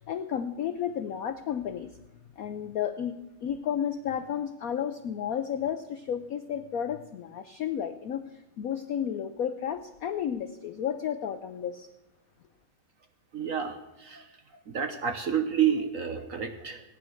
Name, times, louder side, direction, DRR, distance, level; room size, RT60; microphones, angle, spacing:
voice 1, 0.0-1.9 2.4-11.9, left 9 dB, 80° left, 10 dB, 0.7 m, -32 dB
voice 2, 13.3-13.7 14.0-14.2 14.7-16.8, right 8 dB, 50° right, 7 dB, 1.1 m, -29 dB
16.5 x 9.9 x 6.4 m, 0.97 s
omnidirectional pair, 2.3 m